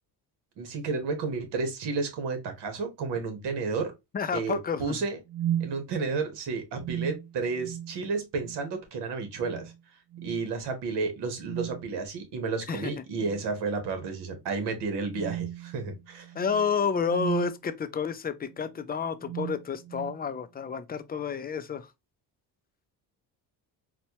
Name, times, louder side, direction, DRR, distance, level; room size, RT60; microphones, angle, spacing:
voice 1, 0.6-3.9 4.3-5.2 5.6-9.7 10.2-16.3, right 4 dB, 80° right, 1.3 m, -32 dB
sound 1, 1.8-2.0 2.5-2.6 3.2-3.7 5.3-5.8 6.8-8.0 8.4-8.7 9.3-9.8 10.1-10.4 11.4-11.9 13.1-13.6 14.0-14.2 15.0-17.6 18.5-18.7 19.2-20.2, right 11 dB, 55° right, 0.5 m, -36 dB
voice 2, 4.1-5.0 12.7-12.9 16.3-21.9, left 6 dB, 25° left, 0.4 m, -30 dB
4.1 x 2.2 x 2.8 m
cardioid pair, 100°, 41 cm